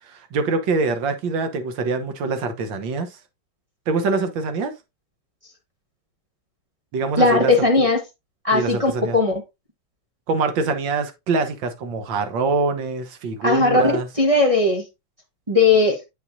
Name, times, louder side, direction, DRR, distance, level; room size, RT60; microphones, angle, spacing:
voice 1, 0.1-3.2 3.9-4.7 6.9-7.5 8.5-9.2 10.3-14.1, right 4 dB, 80° right, 1.8 m, -24 dB
voice 2, 7.2-8.0 8.4-9.3 13.4-13.8 14.2-14.8 15.5-16.0, left 3 dB, 20° right, 1.0 m, -17 dB
8.0 x 6.0 x 2.6 m
omnidirectional pair, 2.0 m